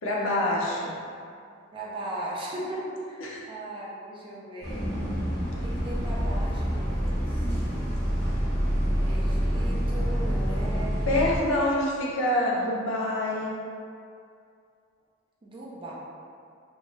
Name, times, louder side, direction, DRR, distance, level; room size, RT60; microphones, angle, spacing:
voice 1, 0.0-1.0 3.2-3.4 11.1-13.5, left 1 dB, 65° left, -3 dB, 0.5 m, -26 dB
voice 2, 1.7-4.9 5.6-7.5 9.0-11.0 15.4-15.9, right 1 dB, 25° right, -6 dB, 0.5 m, -38 dB
Bus, 4.6-11.4, equal, 10° left, 1.3 m, -27 dB
2.6 x 2.3 x 3.0 m, 2.4 s
head